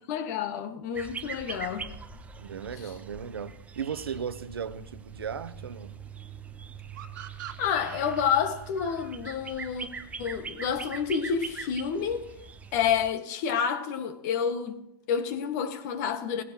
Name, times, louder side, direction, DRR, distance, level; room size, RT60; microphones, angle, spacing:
voice 1, 0.1-1.9 2.8-2.9 7.6-9.9 10.2-12.3 12.7-14.8 15.1-16.4, left 7 dB, 45° left, 1.8 m, -29 dB
sound 1, 0.9-13.1, right 5 dB, 10° right, 0.8 m, -42 dB
voice 2, 2.4-5.9, right 7 dB, 90° right, 1.0 m, -36 dB
sound 2, 6.9-10.3, right 10 dB, 55° right, 1.6 m, -45 dB
18.5 x 15.5 x 3.0 m
hypercardioid pair, 135°, 12 cm